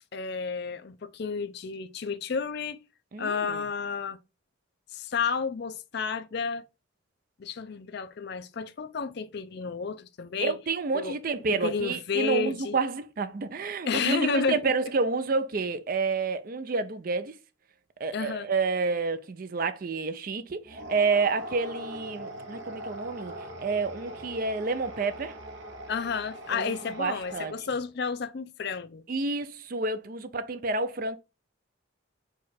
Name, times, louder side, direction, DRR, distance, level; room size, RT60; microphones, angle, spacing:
voice 1, 0.1-2.8 3.2-4.2 4.9-6.7 7.4-10.6 10.9-11.1 11.5-12.8 13.9-14.7 18.1-18.5 25.9-29.0, left 5 dB, 55° left, 0.4 m, -31 dB
voice 2, 3.1-3.6 10.4-17.4 18.0-25.4 26.5-27.5 29.1-31.2, right 4 dB, 40° right, 0.4 m, -29 dB
sound 1, 20.6-27.8, right 1 dB, 65° right, 1.0 m, -41 dB
4.7 x 2.4 x 4.2 m
head